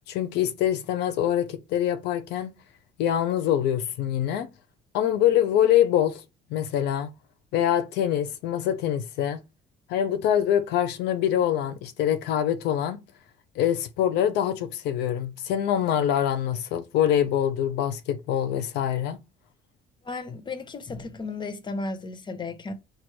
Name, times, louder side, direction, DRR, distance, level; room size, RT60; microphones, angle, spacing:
voice 1, 0.1-2.5 3.0-4.5 4.9-6.2 6.5-7.1 7.5-9.4 9.9-13.0 13.6-19.2, left 10 dB, 85° left, 0.7 m, -24 dB
voice 2, 20.0-22.7, left 3 dB, 25° left, 0.9 m, -34 dB
4.5 x 2.6 x 4.5 m
cardioid pair, 110°, 17 cm